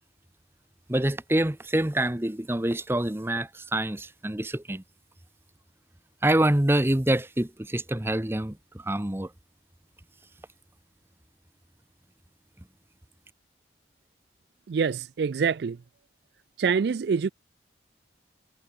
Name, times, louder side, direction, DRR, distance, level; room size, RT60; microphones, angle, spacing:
voice 1, 0.9-4.8 6.2-8.6 8.9-9.3, right 1 dB, 10° right, 0.8 m, -26 dB
voice 2, 14.7-15.8 16.6-17.3, right 6 dB, 65° right, 0.4 m, -25 dB
head